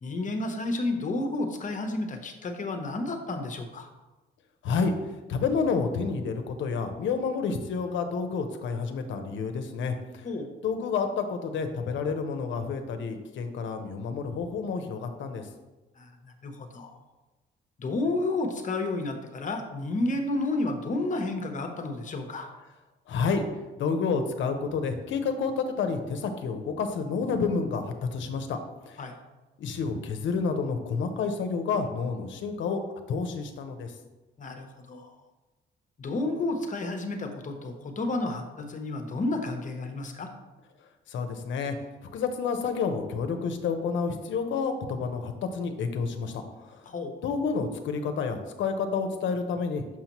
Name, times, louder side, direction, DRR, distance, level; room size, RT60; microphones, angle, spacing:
voice 1, 0.0-3.9 10.2-10.5 16.0-17.0 17.8-22.5 29.0-29.1 34.4-35.1 36.0-40.3 46.9-47.1, left 2 dB, 40° left, 5 dB, 0.9 m, -31 dB
voice 2, 5.3-10.3 10.6-15.5 23.1-23.4 23.8-28.6 28.9-29.0 29.6-32.8 33.1-33.9 41.1-41.7 42.1-46.8 47.2-50.0, left 5 dB, 75° left, 6 dB, 0.7 m, -29 dB
6.1 x 5.7 x 3.0 m, 1.1 s
cardioid pair, 90°, 20 cm